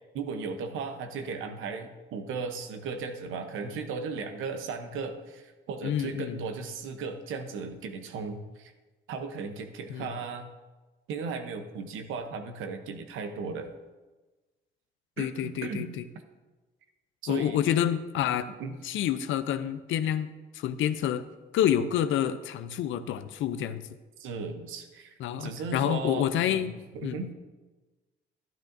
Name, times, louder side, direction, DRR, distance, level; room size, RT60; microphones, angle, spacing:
voice 1, 0.1-8.7 9.1-10.5 11.1-13.7 15.2-15.9 17.2-17.6 18.6-18.8 24.2-25.1 25.4-26.6 26.9-27.3, right 4 dB, 85° right, 7 dB, 0.9 m, -36 dB
voice 2, 5.8-6.4 9.9-10.1 15.2-16.0 17.3-18.5 18.8-21.2 21.5-23.8 25.2-26.7 27.0-27.3, left 10 dB, 80° left, 12 dB, 0.5 m, -28 dB
12.0 x 8.9 x 2.6 m, 1.2 s
cardioid pair, 90°, 20 cm